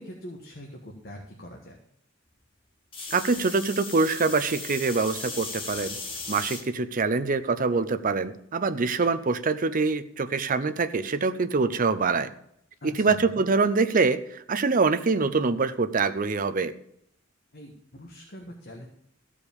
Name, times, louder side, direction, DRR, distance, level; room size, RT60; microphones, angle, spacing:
voice 1, 0.0-1.8 12.8-13.2 17.5-18.9, equal, 50° left, 1 dB, 1.4 m, -43 dB
sound 1, 2.9-6.6 7.3-7.7 9.0-9.1, left 3 dB, 25° left, 1.7 m, -37 dB
voice 2, 3.1-6.0 6.3-12.3 12.8-16.7, right 4 dB, 40° right, 11 dB, 0.6 m, -25 dB
14.5 x 5.0 x 7.0 m, 0.72 s
head